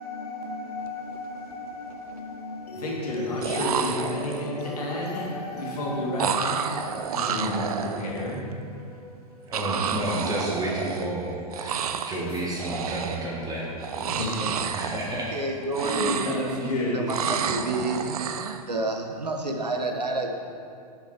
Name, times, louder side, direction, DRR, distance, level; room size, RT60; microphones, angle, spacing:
voice 1, 0.0-1.2 1.5-1.8 2.7-6.6 7.3-7.6 8.0-8.4 14.1-14.3 15.8-16.4 16.7-16.9, left 2 dB, 70° left, -3 dB, 2.2 m, -30 dB
sound 1, 1.0-1.2 1.5-2.1 3.1-3.2 3.4-4.6 6.2-8.4 9.5-11.2 11.5-12.2 12.5-13.3 13.8-15.4 15.7-16.7 17.1-18.6, right 7 dB, 65° right, 0.6 m, -30 dB
voice 2, 9.4-14.3 14.7-15.3 16.3-16.4 16.6-16.7, right 1 dB, 20° right, -5 dB, 1.9 m, -31 dB
voice 3, 15.3-16.2 16.9-18.0 18.7-20.4, right 2 dB, 90° right, 3 dB, 1.0 m, -29 dB
6.4 x 6.3 x 5.7 m, 2.5 s
figure-of-eight pair, 105°, 20 cm